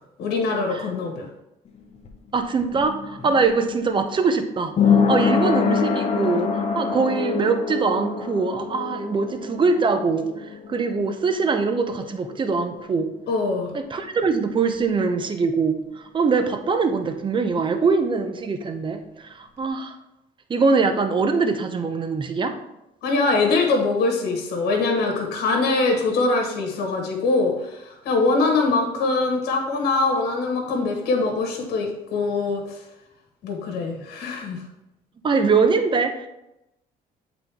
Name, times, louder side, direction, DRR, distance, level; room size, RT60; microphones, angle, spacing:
voice 1, 0.2-1.3 13.3-13.7 23.0-32.8 33.4-34.6, left 3 dB, 70° left, 2 dB, 1.5 m, -23 dB
sound 1, 1.7-13.2 13.5-13.6, left 5 dB, 40° left, 0.9 m, -25 dB
voice 2, 2.3-4.7 5.1-6.5 6.7-13.1 13.7-20.0 20.5-22.5 35.2-36.3, right 4 dB, 30° right, 7 dB, 0.7 m, -23 dB
7.9 x 4.0 x 3.5 m, 0.88 s
cardioid pair, 110°, 17 cm